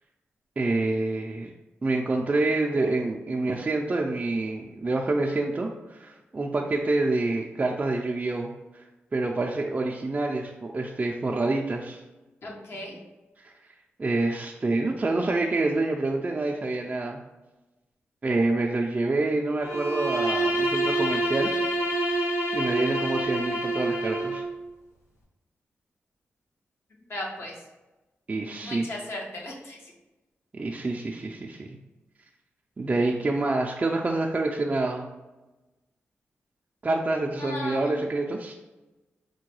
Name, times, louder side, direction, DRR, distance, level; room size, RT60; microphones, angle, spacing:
voice 1, 0.6-1.5 1.8-8.5 9.1-12.0 13.4-13.5 14.0-17.2 18.2-21.5 22.1-24.4 28.3-28.9 30.5-31.8 32.8-35.1 36.8-38.5, right 2 dB, 30° right, 0 dB, 0.3 m, -27 dB
voice 2, 12.4-13.0 27.1-27.5 28.6-29.9 37.4-38.0, left 1 dB, 60° left, -1 dB, 1.0 m, -36 dB
Bowed string instrument, 19.6-24.5, right 1 dB, 85° left, 0.9 m, -27 dB
4.5 x 2.2 x 3.0 m, 1.1 s
cardioid pair, 70°, 5 cm